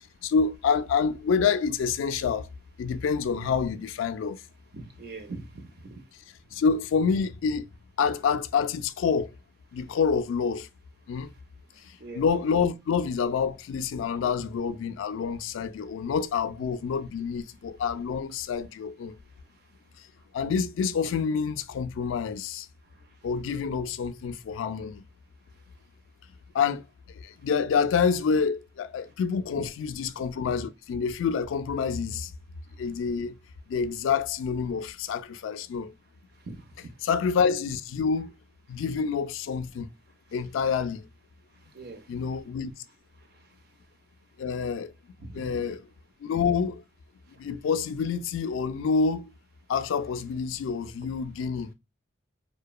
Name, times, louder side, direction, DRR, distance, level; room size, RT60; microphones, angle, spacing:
voice 1, 0.2-2.5 2.8-4.4 6.5-7.7 8.0-9.3 9.7-10.7 11.1-11.3 11.9-19.1 20.3-22.7 23.2-25.0 26.5-26.8 27.1-32.3 32.8-33.4 33.7-35.9 37.0-38.3 38.7-39.9 40.3-41.0 42.1-42.7 44.4-44.9 45.3-45.8 46.2-46.8 47.4-49.3 49.7-51.7, left 6 dB, 75° left, 0.3 m, -27 dB
voice 2, 4.7-6.0 12.0-12.2 29.5-29.6 36.4-36.9 41.7-42.0 45.2-45.6, right 3 dB, 50° right, 0.5 m, -41 dB
2.9 x 2.1 x 2.3 m
head